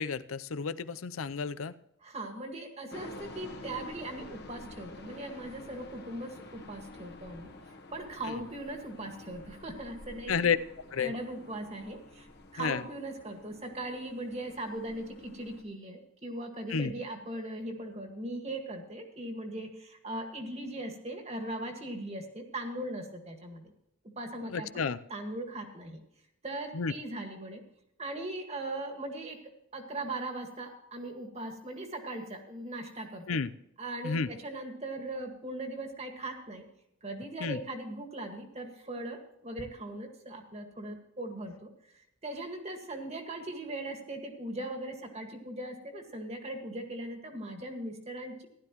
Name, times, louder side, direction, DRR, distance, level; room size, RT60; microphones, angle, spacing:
voice 1, 0.0-1.7 8.3-8.4 10.3-10.6 10.9-11.1 12.6-12.8 16.7-16.9 24.5-25.0 26.7-26.9 33.3-33.5 34.0-34.3 37.4-37.6, left 5 dB, 85° left, 15 dB, 0.6 m, -31 dB
voice 2, 2.0-7.5 7.9-10.5 11.0-12.3 12.5-23.7 24.2-24.8 25.1-26.0 26.4-27.6 28.0-29.4 29.7-33.4 33.8-36.7 37.0-41.7 42.2-48.5, right 1 dB, 30° right, 4 dB, 1.8 m, -39 dB
sound 1, 2.9-15.6, left 2 dB, 55° left, 1.4 m, -49 dB
15.5 x 12.0 x 3.0 m, 0.79 s
head